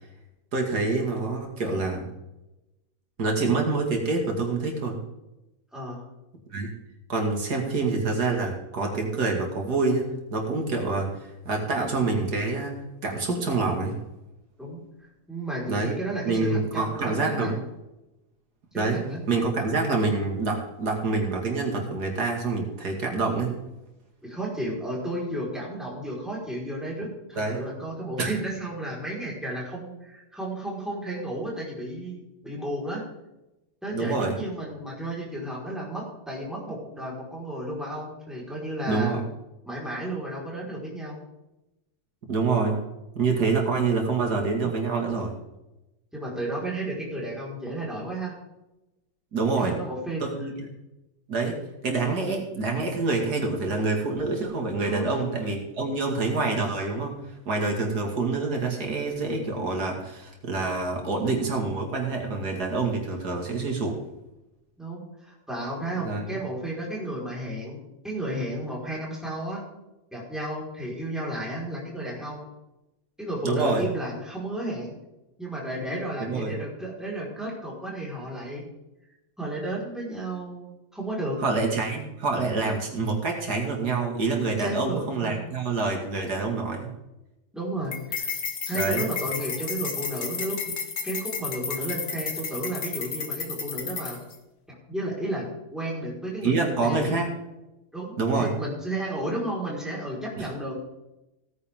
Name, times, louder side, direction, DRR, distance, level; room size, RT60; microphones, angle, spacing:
voice 1, 0.5-2.0 3.2-5.0 6.5-6.7 7.1-10.0 10.3-11.2 11.4-12.7 13.0-14.0 15.7-15.9 16.2-17.5 18.8-19.0 19.3-23.5 27.4-27.6 28.2-28.3 33.9-34.4 38.9-39.2 42.3-42.8 43.2-45.3 49.3-49.7 50.2-50.8 51.3-57.2 57.5-64.0 66.0-66.2 73.4-73.8 76.2-76.5 81.4-86.9 88.7-89.1 96.4-97.3 98.2-98.5 100.4-100.5, right 3 dB, 90° right, 1 dB, 2.8 m, -26 dB
voice 2, 5.7-6.1 14.6-17.6 18.7-19.2 24.2-33.0 33.8-39.2 39.6-41.2 46.1-48.4 49.6-50.2 54.8-55.2 64.8-67.8 68.0-69.6 70.1-72.4 73.2-75.0 75.4-78.7 79.4-81.4 84.6-85.5 87.5-88.4 88.7-90.7 91.0-94.2 94.9-97.1 97.9-100.8, right 1 dB, ahead, -4 dB, 4.8 m, -33 dB
sound 1, 87.9-94.4, left 5 dB, 75° left, 2.1 m, -32 dB
17.0 x 9.7 x 3.7 m, 0.96 s
omnidirectional pair, 1.6 m